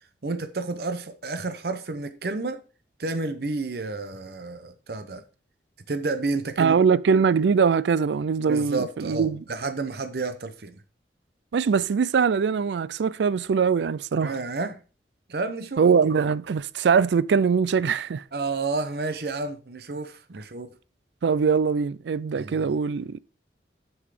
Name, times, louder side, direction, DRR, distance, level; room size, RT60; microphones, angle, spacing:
voice 1, 0.2-2.6 3.0-5.2 5.9-6.8 8.5-10.8 14.2-14.8 15.3-15.8 18.3-20.7 22.4-22.7, right 3 dB, 65° right, 0.7 m, -30 dB
voice 2, 6.6-9.4 11.5-14.3 15.8-18.2 21.2-23.2, right 6 dB, 85° right, 0.4 m, -22 dB
7.2 x 6.7 x 4.9 m
head